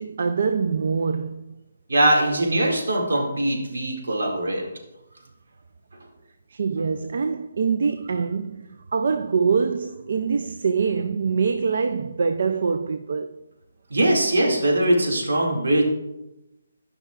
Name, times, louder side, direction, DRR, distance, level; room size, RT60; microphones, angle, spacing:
voice 1, 0.0-1.4 6.5-13.4, right 5 dB, 55° right, 0.3 m, -24 dB
voice 2, 1.9-4.7 13.9-15.9, right 1 dB, 75° right, 2.1 m, -21 dB
12.5 x 5.8 x 2.4 m
hypercardioid pair, 165°, 0 cm